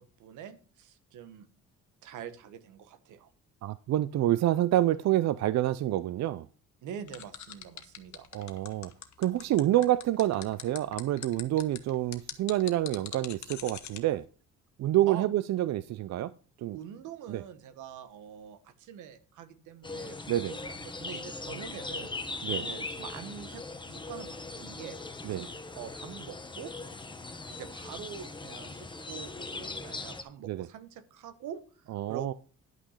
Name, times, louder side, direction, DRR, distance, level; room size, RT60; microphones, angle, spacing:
voice 1, 0.0-1.5 2.0-3.3 6.8-8.3 15.1-15.3 16.7-22.1 22.5-23.6 23.9-25.0 25.3-25.5 25.7-26.7 27.5-32.3, right 8 dB, 85° right, 1.1 m, -45 dB
voice 2, 3.6-6.5 8.3-8.9 9.2-14.3 14.8-16.3 16.6-16.8 17.3-17.4 20.3-20.6 22.4-22.6 25.2-25.4 30.4-30.7 31.9-32.3, right 14 dB, 65° right, 0.5 m, -27 dB
sound 1, 7.1-14.0, left 10 dB, 65° left, 1.2 m, -42 dB
sound 2, 19.8-30.2, left 3 dB, 15° left, 1.2 m, -40 dB
11.0 x 5.8 x 5.6 m
cardioid pair, 90°, 30 cm